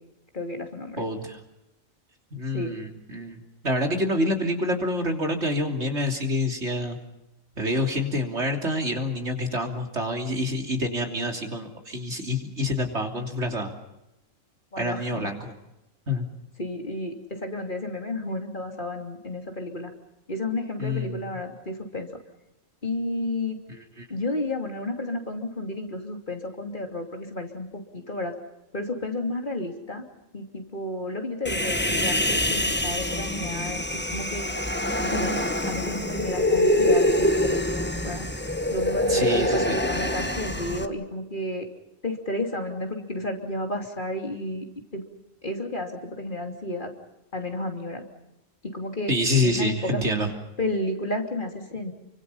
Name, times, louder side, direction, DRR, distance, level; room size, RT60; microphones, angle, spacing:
voice 1, 0.3-1.1 2.5-2.7 4.0-4.3 14.7-15.3 16.6-19.9 20.3-22.1 22.8-23.6 24.1-28.4 28.7-30.0 30.3-34.5 35.0-37.7 38.0-38.3 38.7-41.7 42.0-44.6 44.9-45.0 45.4-46.9 47.3-48.0 48.6-49.1 49.4-50.0 50.6-51.9, left 1 dB, 40° left, 4 dB, 3.2 m, -32 dB
voice 2, 1.0-1.4 2.3-7.0 7.6-13.7 14.8-15.5 16.1-16.3 20.8-21.2 23.7-24.1 39.1-39.8 49.1-50.3, left 1 dB, 60° right, 3 dB, 3.5 m, -27 dB
Human voice, 31.4-40.8, left 1 dB, 10° left, 1.3 m, -25 dB
30.0 x 25.0 x 5.6 m, 0.91 s
omnidirectional pair, 1.3 m